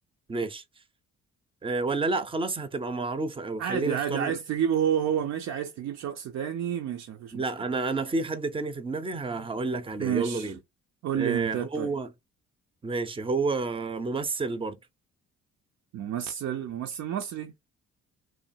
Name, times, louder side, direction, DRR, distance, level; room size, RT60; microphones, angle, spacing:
voice 1, 0.3-0.6 1.6-4.4 7.3-10.6 11.1-12.1 12.8-14.8, right 3 dB, 20° right, 0.5 m, -30 dB
voice 2, 3.6-7.5 10.0-10.5 11.0-11.9 15.9-17.5, right 9 dB, 65° right, 0.5 m, -30 dB
3.1 x 2.0 x 2.5 m
cardioid pair, 90°, 30 cm